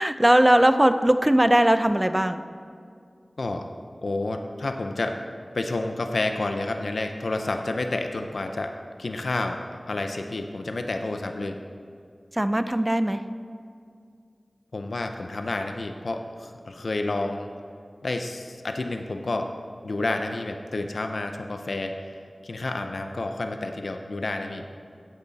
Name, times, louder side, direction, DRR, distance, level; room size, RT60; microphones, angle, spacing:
voice 1, 0.0-2.4 12.3-13.2, right 1 dB, 20° right, 10 dB, 0.5 m, -19 dB
voice 2, 4.0-5.1 5.5-8.7 9.0-9.6 9.9-11.6 14.7-17.5 18.0-19.5 19.8-22.1 22.4-24.7, left 2 dB, 90° left, 5 dB, 0.6 m, -29 dB
15.5 x 8.2 x 4.1 m, 2.3 s
wide cardioid pair, 45°, 0 cm